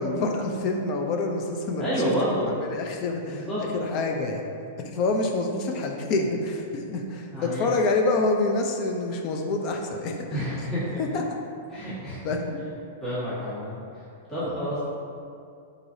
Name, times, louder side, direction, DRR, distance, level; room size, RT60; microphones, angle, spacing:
voice 1, 0.0-2.1 2.6-4.4 4.9-10.4 11.0-11.2 12.2-12.6 14.6-14.7, left 2 dB, 40° left, 2 dB, 0.5 m, -27 dB
voice 2, 1.8-2.5 3.3-3.6 7.3-7.7 10.3-11.0 11.7-12.2 13.0-14.0 14.3-14.8, equal, 15° left, -13 dB, 1.4 m, -29 dB
4.6 x 3.9 x 2.7 m, 2.5 s
hypercardioid pair, 135°, 0 cm